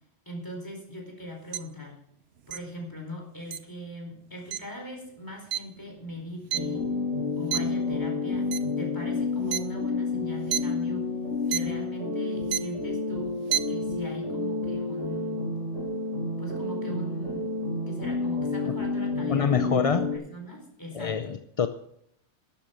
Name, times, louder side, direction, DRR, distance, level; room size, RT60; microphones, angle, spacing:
voice 1, 0.3-2.0 2.5-6.9 7.4-8.5 8.8-11.1 11.5-13.3 13.7-15.5 16.4-17.5 17.9-21.4, equal, 15° left, 1 dB, 4.6 m, -40 dB
sound 1, 1.5-1.6 2.5-2.6 3.5-3.6 4.5-4.6 5.5-5.6 6.0-7.1 7.5-7.8 8.4-8.7 9.5-9.6 10.3-10.6 11.5-11.6 12.4-12.8 13.3-13.6, right 11 dB, 60° right, 0.9 m, -29 dB
sound 2, 6.5-20.1, left 3 dB, 85° right, 3.9 m, -30 dB
voice 2, 19.3-20.1 20.9-21.7, left 6 dB, 40° left, 9 dB, 0.5 m, -26 dB
13.0 x 11.5 x 6.0 m, 0.71 s
omnidirectional pair, 1.3 m